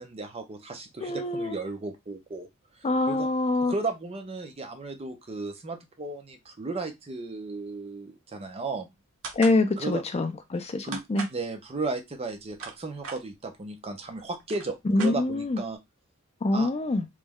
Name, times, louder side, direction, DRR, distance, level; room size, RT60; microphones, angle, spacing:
voice 1, 0.0-2.5 3.1-3.3 3.6-8.9 9.8-10.0 10.8-11.0 11.3-15.8 16.5-16.7, right 3 dB, 25° right, 0.5 m, -35 dB
voice 2, 1.0-1.6 2.8-3.7 9.3-11.3 14.9-15.6 16.4-17.0, left 2 dB, 30° left, 0.4 m, -25 dB
sound 1, 9.2-9.6 10.9-11.4 12.3-13.2 14.0-14.1 14.4-15.6, right 4 dB, 65° right, 0.8 m, -39 dB
3.1 x 2.2 x 3.5 m
head